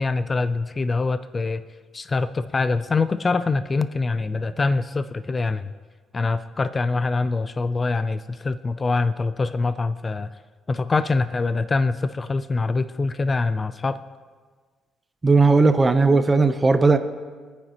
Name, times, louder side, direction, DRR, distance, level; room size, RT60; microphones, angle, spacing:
voice 1, 0.0-1.7 1.9-5.7 6.1-10.3 10.7-14.0, left 3 dB, 25° left, 12 dB, 0.4 m, -24 dB
voice 2, 15.2-17.0, right 3 dB, 20° right, 8 dB, 0.7 m, -17 dB
24.5 x 9.3 x 2.9 m, 1.5 s
cardioid pair, 120°, 0 cm